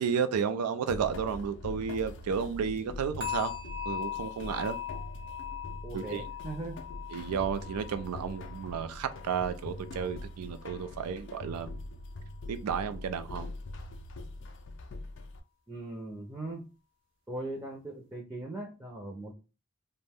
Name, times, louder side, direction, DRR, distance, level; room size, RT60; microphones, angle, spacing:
voice 1, 0.0-3.6 3.9-4.8 5.9-6.2 7.1-11.7 12.5-13.5, right 6 dB, 90° right, 0.4 m, -32 dB
sound 1, 0.9-15.4, left 2 dB, 55° left, 0.3 m, -43 dB
sound 2, 3.2-10.3 10.6-11.0 11.5-11.6, left 9 dB, 55° right, 0.7 m, -41 dB
voice 2, 5.8-6.8 15.7-16.6 17.3-19.3, right 2 dB, 10° right, 0.4 m, -39 dB
2.5 x 2.1 x 3.4 m
head